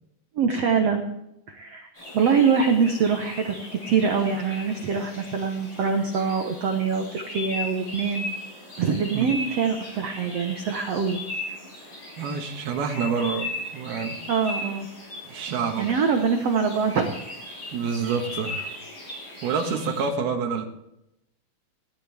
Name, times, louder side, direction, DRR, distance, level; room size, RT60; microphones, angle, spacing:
voice 1, 0.4-1.0 1.5-1.9 2.1-3.6 3.8-8.3 8.8-11.2 14.3-14.9 15.8-17.1, right 6 dB, 60° right, 4 dB, 1.8 m, -24 dB
sound 1, 2.0-20.1, left 2 dB, 30° left, 8.5 m, -38 dB
voice 2, 12.2-14.2 15.3-15.9 17.7-18.7 19.4-20.7, right 5 dB, 90° right, 4 dB, 3.5 m, -27 dB
19.5 x 15.0 x 3.5 m, 0.83 s
omnidirectional pair, 4.2 m